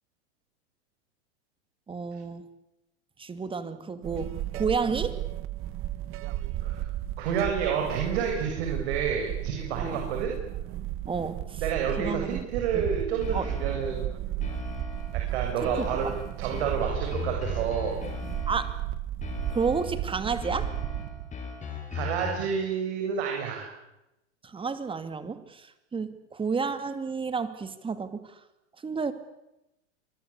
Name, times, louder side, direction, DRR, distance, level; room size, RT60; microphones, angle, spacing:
voice 1, 1.9-2.5 3.2-5.2 9.8-10.0 11.1-11.6 12.0-12.5 12.7-12.9 13.3-13.5 15.6-15.9 18.5-18.7 19.5-20.7 24.4-28.3 28.8-29.1, right 5 dB, 15° right, 11 dB, 2.5 m, -31 dB
sound 1, 4.0-21.4, right 13 dB, 35° right, 1.3 m, -34 dB
voice 2, 7.2-10.4 11.6-14.1 15.3-16.1 16.4-18.0 21.9-23.7, right 7 dB, 65° right, 1 dB, 7.0 m, -29 dB
sound 2, 13.2-14.0 14.4-15.2 15.6-18.8 19.2-20.0 20.4-22.6, left 4 dB, 20° left, 7.3 m, -38 dB
27.0 x 22.0 x 8.5 m, 0.91 s
hypercardioid pair, 120°, 35 cm